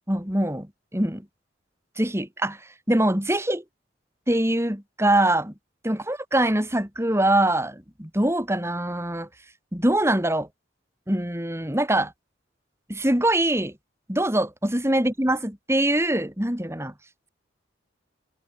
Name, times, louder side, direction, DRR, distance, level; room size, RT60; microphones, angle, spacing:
voice 1, 0.1-1.2 2.0-2.6 2.9-3.6 4.3-5.5 5.8-9.3 9.7-10.5 11.1-12.1 12.9-13.7 14.1-16.9, right 1 dB, 15° right, 3.6 m, -23 dB
head